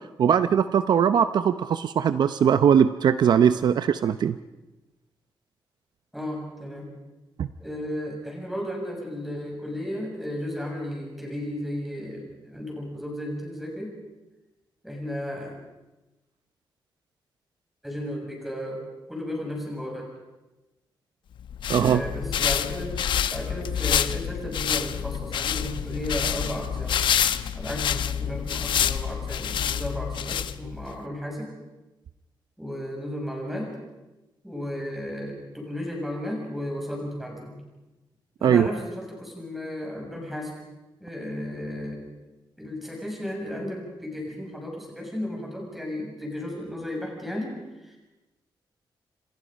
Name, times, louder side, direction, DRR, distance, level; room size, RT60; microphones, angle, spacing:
voice 1, 0.2-4.4 7.4-7.5 21.7-22.0 38.4-38.7, right 8 dB, 60° right, 11 dB, 0.7 m, -20 dB
voice 2, 6.1-7.0 7.6-13.9 14.8-15.5 17.8-18.8 19.1-20.1 21.7-22.9 23.3-27.0 27.5-31.5 32.6-33.7 34.4-37.6 38.4-40.5 41.0-42.0 42.6-47.5 47.8-48.0, left 1 dB, ahead, -1 dB, 7.0 m, -34 dB
sound 1, 21.4-30.9, left 9 dB, 80° left, 0.9 m, -27 dB
29.0 x 26.0 x 5.3 m, 1.1 s
wide cardioid pair, 175°, 8 cm